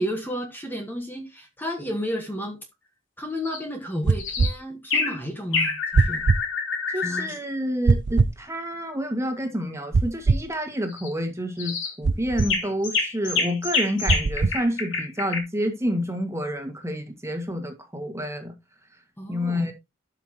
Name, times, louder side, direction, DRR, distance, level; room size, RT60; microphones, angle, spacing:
voice 1, 0.0-2.6 3.2-6.3 7.0-7.3 19.2-19.7, equal, 10° left, 1.4 m, -32 dB
sound 1, 3.4-3.6 4.2-4.6 4.9-5.2 5.5-7.4 10.9-11.1 11.6-11.9 12.4-15.4, left 4 dB, 75° left, 2.9 m, -27 dB
sound 2, 4.0-4.5 5.9-6.4 7.9-8.4 9.9-10.5 12.0-12.5 14.1-14.6, right 4 dB, 60° right, 0.5 m, -21 dB
voice 2, 6.9-18.5 19.3-19.7, equal, 15° right, 1.8 m, -29 dB
12.0 x 5.8 x 3.0 m
head